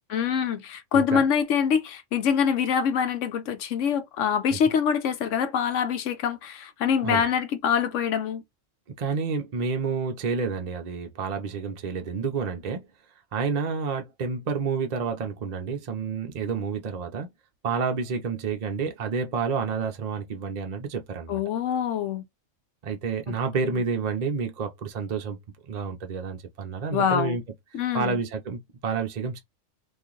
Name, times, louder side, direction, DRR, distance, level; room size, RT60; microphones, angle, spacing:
voice 1, 0.1-8.4 21.3-22.2 23.3-23.4 23.6-23.8 26.9-27.4 27.7-28.2, left 7 dB, 75° left, 1.0 m, -25 dB
voice 2, 0.9-1.2 4.5-4.6 7.0-7.2 9.0-12.9 13.3-17.3 17.6-21.4 22.8-25.4 25.7-27.4 27.9-29.4, right 5 dB, 45° right, 0.5 m, -29 dB
2.9 x 2.5 x 3.7 m
omnidirectional pair, 1.3 m